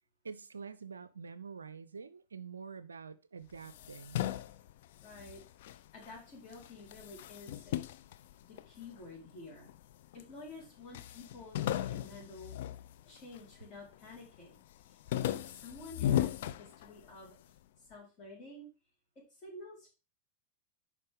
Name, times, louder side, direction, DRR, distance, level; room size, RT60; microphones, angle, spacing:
voice 1, 0.2-4.2, right 5 dB, 75° right, 0.4 m, -47 dB
sound 1, 3.5-6.2 6.5-9.0 9.6-10.3 10.6-10.7 10.9-13.5 13.9-14.4 14.7-17.3, left 12 dB, 55° left, 0.5 m, -37 dB
voice 2, 5.0-7.8 8.5-9.7 10.1-12.5 13.0-14.6 14.8-17.4 17.8-18.7 19.3-19.9, left 2 dB, 35° left, 4.1 m, -51 dB
9.5 x 5.5 x 3.6 m
figure-of-eight pair, 90°, 0 cm